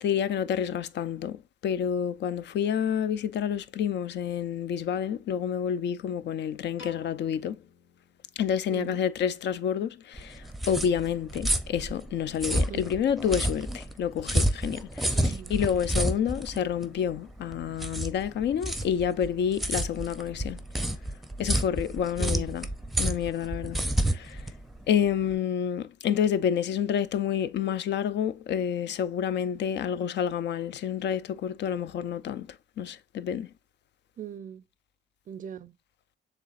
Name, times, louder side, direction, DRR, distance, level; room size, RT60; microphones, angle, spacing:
voice 1, 0.0-1.4 1.6-7.6 8.4-10.3 10.7-15.2 15.5-20.6 21.4-22.7 23.0-23.8 24.1-24.4 24.9-32.5 32.8-33.5, left 8 dB, 60° left, 0.5 m, -29 dB
Piano, 6.8-9.0, left 3 dB, 80° left, 1.4 m, -52 dB
voice 2, 8.7-9.0 12.7-12.8 15.1-15.6 22.2-22.5 34.2-34.6 35.3-35.8, right 8 dB, 45° right, 0.5 m, -40 dB
sound 1, 10.1-25.3, right 1 dB, ahead, 0.6 m, -30 dB
6.6 x 3.3 x 2.4 m
cardioid pair, 90°, 20 cm